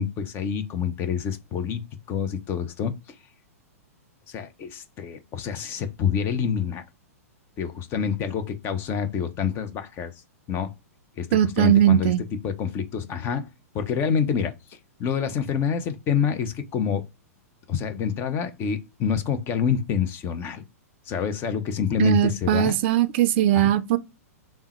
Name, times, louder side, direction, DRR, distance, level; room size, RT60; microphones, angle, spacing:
voice 1, 0.0-3.2 4.3-6.8 7.6-10.1 10.5-10.7 11.2-13.5 13.7-17.0 17.7-20.6 21.1-22.8 23.5-23.7, left 7 dB, 30° left, 0.5 m, -27 dB
voice 2, 11.3-12.2 22.0-24.0, right 12 dB, 45° right, 0.4 m, -20 dB
3.4 x 2.1 x 2.9 m
figure-of-eight pair, 105°, 8 cm